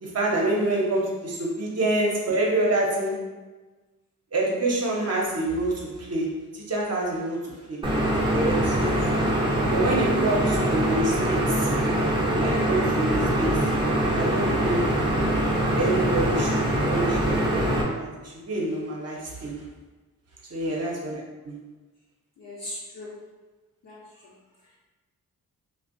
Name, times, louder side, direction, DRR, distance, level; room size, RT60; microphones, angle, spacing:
voice 1, 0.0-3.2 4.3-7.8 8.3-8.9 9.7-11.7 12.4-13.7 14.1-14.9 15.8-17.6 18.0-19.6 20.5-21.6, right 2 dB, 40° right, -2 dB, 0.8 m, -27 dB
sound 1, 7.8-17.8, right 1 dB, 15° right, 0.7 m, -23 dB
voice 2, 22.4-23.1 23.8-24.0, left 1 dB, 45° left, -6 dB, 0.7 m, -39 dB
2.5 x 2.1 x 2.5 m, 1.3 s
supercardioid pair, 40°, 38 cm